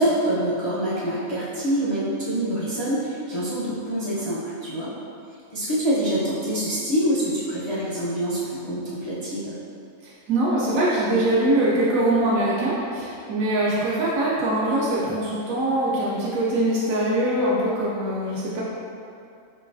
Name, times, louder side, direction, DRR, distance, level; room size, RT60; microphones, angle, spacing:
voice 1, 0.0-4.9 5.5-9.6, right 1 dB, 40° left, -10 dB, 0.4 m, -25 dB
voice 2, 10.0-18.6, right 1 dB, 85° right, -7 dB, 1.1 m, -23 dB
3.9 x 2.9 x 2.6 m, 2.5 s
omnidirectional pair, 1.4 m